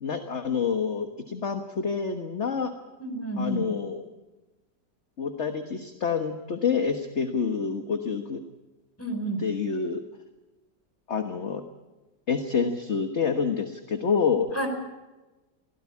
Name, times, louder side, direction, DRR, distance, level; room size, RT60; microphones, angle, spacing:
voice 1, 0.0-2.7 3.4-4.0 5.2-8.4 9.4-10.0 11.1-11.6 12.3-14.5, left 6 dB, 40° left, 7 dB, 1.6 m, -27 dB
voice 2, 3.0-3.6 9.0-9.4 14.5-14.7, right 1 dB, 10° left, 4 dB, 4.7 m, -30 dB
24.0 x 17.0 x 8.6 m, 1.1 s
omnidirectional pair, 1.9 m